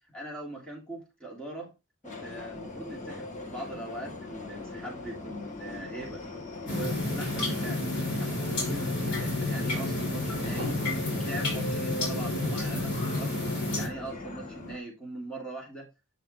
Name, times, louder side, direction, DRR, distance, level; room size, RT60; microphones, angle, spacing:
voice 1, 0.1-1.7 2.0-6.3 6.6-7.8 8.1-10.8 11.1-13.4 13.7-15.9, right 2 dB, 5° left, -2 dB, 2.9 m, -41 dB
Subway metro underground, 2.0-14.8, left 2 dB, 35° left, 1.8 m, -41 dB
sound 1, 6.7-13.9, left 2 dB, 55° left, 4.9 m, -30 dB
9.5 x 5.6 x 3.3 m, 0.24 s
head